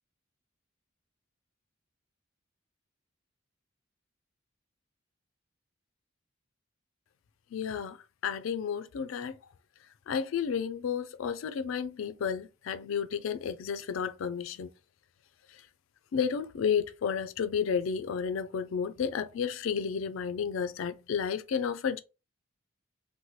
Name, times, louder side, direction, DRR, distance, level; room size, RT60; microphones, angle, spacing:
voice 1, 7.5-8.0 8.2-9.4 10.1-14.7 16.1-22.0, left 7 dB, 75° left, 0.3 m, -32 dB
2.9 x 2.2 x 3.0 m
head